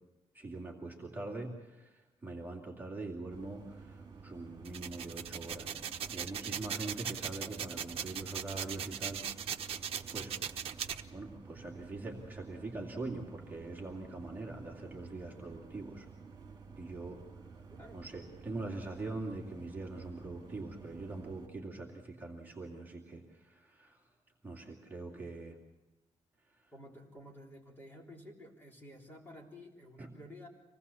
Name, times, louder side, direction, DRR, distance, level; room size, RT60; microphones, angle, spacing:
voice 1, 0.3-5.8 6.1-10.3 11.1-16.1 16.8-17.2 17.9-24.0 24.4-25.6 30.0-30.1, right 2 dB, 15° right, -1 dB, 2.4 m, -43 dB
sound 1, 3.3-21.5, right 4 dB, 35° right, 2.9 m, -52 dB
sound 2, 4.6-11.0, right 8 dB, 55° right, 1.0 m, -39 dB
voice 2, 17.8-18.1 26.7-30.5, left 1 dB, 15° left, -1 dB, 3.5 m, -52 dB
25.5 x 18.5 x 7.0 m, 1.1 s
cardioid pair, 165°, 12 cm